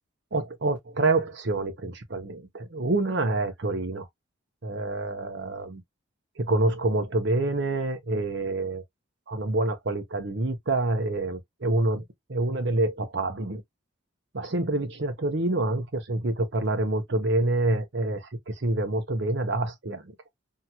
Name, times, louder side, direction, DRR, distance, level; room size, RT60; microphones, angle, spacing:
voice 1, 0.3-4.1 4.6-5.8 6.4-8.8 9.3-12.0 12.3-13.6 14.3-18.3 18.6-20.0, right 2 dB, 55° right, 0.8 m, -27 dB
2.9 x 2.8 x 2.3 m
head